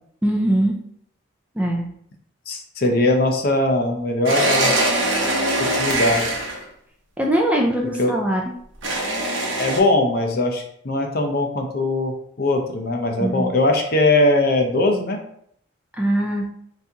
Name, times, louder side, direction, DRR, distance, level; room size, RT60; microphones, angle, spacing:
voice 1, 0.2-0.8 1.6-1.9 7.2-8.5 13.2-13.5 16.0-16.5, right 1 dB, 5° right, -1 dB, 0.4 m, -21 dB
voice 2, 2.5-4.7 5.6-6.3 8.0-8.1 9.6-15.2, left 2 dB, 45° left, 3 dB, 0.6 m, -20 dB
sound 1, 4.2-6.6 8.8-9.8, right 1 dB, 65° right, 0.9 m, -22 dB
4.1 x 3.5 x 2.8 m, 0.67 s
head